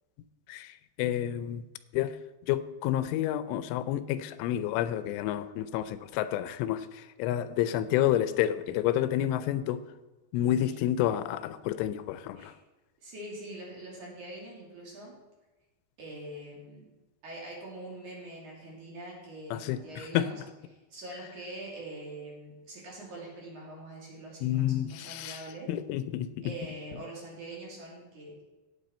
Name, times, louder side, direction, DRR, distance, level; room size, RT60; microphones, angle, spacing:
voice 1, 0.5-1.6 1.9-2.2 2.5-9.8 10.3-12.6 19.5-19.8 20.1-20.3 24.4-25.4 25.7-26.5, left 12 dB, 90° left, 13 dB, 3.1 m, -29 dB
voice 2, 13.0-15.2 16.0-16.9 17.2-20.4 20.7-25.7 26.4-28.4, right 1 dB, 45° right, -3 dB, 3.6 m, -44 dB
16.0 x 8.8 x 4.3 m, 1.1 s
omnidirectional pair, 5.4 m